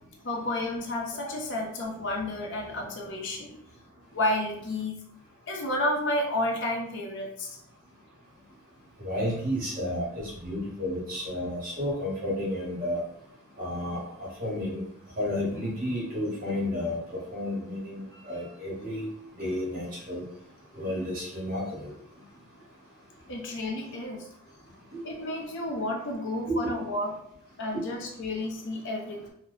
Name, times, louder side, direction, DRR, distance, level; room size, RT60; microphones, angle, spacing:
voice 1, 0.2-3.6 4.1-5.0 5.5-7.6 23.3-24.3 25.0-27.1 27.6-29.3, left 1 dB, 55° left, 0 dB, 0.7 m, -31 dB
voice 2, 9.0-13.0 13.6-14.8 15.2-19.1 19.4-20.2 20.7-21.9 24.9-25.0 26.5-26.6 27.7-27.8, left 1 dB, 40° right, -5 dB, 1.4 m, -31 dB
2.9 x 2.1 x 3.9 m, 0.68 s
head